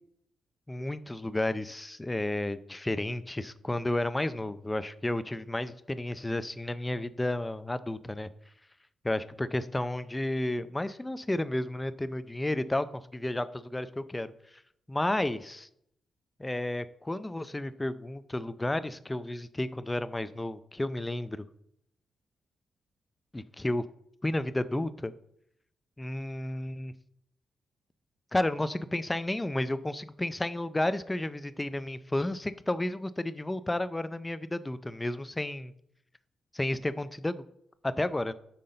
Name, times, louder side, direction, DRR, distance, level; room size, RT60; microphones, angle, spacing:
voice 1, 0.7-8.3 9.0-12.9 13.1-14.3 14.9-15.7 16.4-21.5 23.3-23.8 24.2-25.1 26.0-26.9 28.3-35.7 36.5-37.4 37.8-38.3, left 1 dB, 15° left, 13 dB, 0.4 m, -32 dB
5.7 x 3.8 x 5.3 m, 0.73 s
cardioid pair, 95°, 0 cm